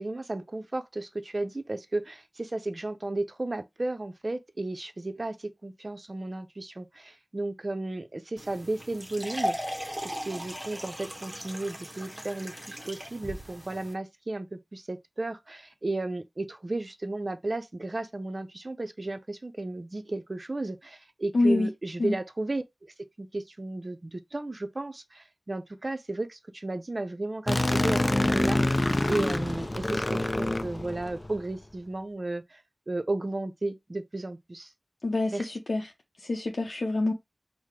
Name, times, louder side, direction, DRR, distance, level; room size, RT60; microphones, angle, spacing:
voice 1, 0.0-9.6 10.0-22.9 23.2-28.6 29.1-32.6 32.9-34.7 35.3-35.4, right 2 dB, 45° right, 0.5 m, -34 dB
sound 1, 8.4-13.9, equal, 10° right, 1.0 m, -37 dB
voice 2, 21.3-21.7 22.0-22.2 35.0-35.9 36.2-37.1, left 2 dB, 75° left, 0.6 m, -26 dB
sound 2, 27.5-31.4, left 1 dB, 30° left, 0.3 m, -26 dB
4.6 x 2.1 x 3.6 m
wide cardioid pair, 70°, 0 cm